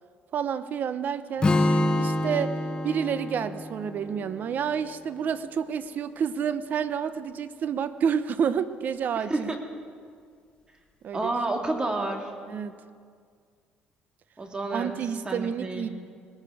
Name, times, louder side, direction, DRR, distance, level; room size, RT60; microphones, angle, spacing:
voice 1, 0.3-1.5 2.0-2.5 2.8-9.5 11.0-11.3 12.5-12.8 14.7-15.9, right 7 dB, 55° right, 13 dB, 0.8 m, -29 dB
Strum, 1.4-5.6, left 1 dB, 25° left, 1.1 m, -27 dB
voice 2, 9.3-9.6 11.1-12.3 14.4-14.9 15.2-15.9, right 2 dB, 25° right, 3 dB, 2.1 m, -29 dB
20.5 x 13.5 x 4.9 m, 2.1 s
cardioid pair, 100°, 4 cm